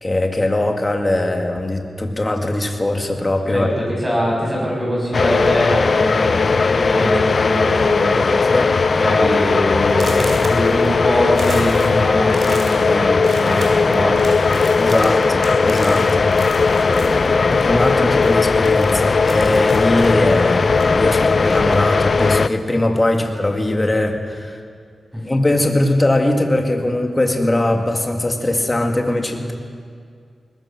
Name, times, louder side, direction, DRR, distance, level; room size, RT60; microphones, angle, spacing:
voice 1, 0.0-3.7 8.5-8.7 14.8-16.3 16.9-24.6 25.2-29.5, left 1 dB, 25° left, 3 dB, 2.3 m, -20 dB
voice 2, 3.5-8.5 8.9-14.3 23.1-23.2 25.1-25.2, equal, 5° right, -4 dB, 7.5 m, -23 dB
sound 1, 5.1-22.5, left 4 dB, 50° left, 0.5 m, -17 dB
sound 2, 5.4-5.7 6.5-6.6 7.0-7.3 7.6-8.0 8.4-8.5 9.0-9.1 9.9-18.0 18.2-21.9 22.3-23.3, right 2 dB, 65° right, 3.9 m, -36 dB
21.5 x 20.0 x 6.1 m, 2.1 s
wide cardioid pair, 90°, 0 cm